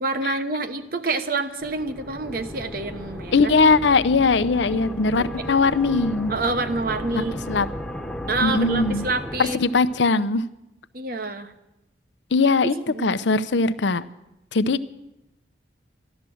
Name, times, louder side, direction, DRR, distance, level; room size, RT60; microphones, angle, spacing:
voice 1, 0.0-3.4 4.7-5.5 6.3-7.3 8.3-9.6 10.9-11.5 12.9-13.1, right 3 dB, 50° right, 9 dB, 1.0 m, -27 dB
sound 1, 1.6-10.1, equal, 5° left, 1.0 m, -35 dB
voice 2, 3.3-6.3 7.1-7.7 8.4-9.1 9.4-10.4 12.3-14.0 14.5-14.9, left 4 dB, 80° left, 13 dB, 0.6 m, -20 dB
14.0 x 12.0 x 7.8 m, 0.91 s
head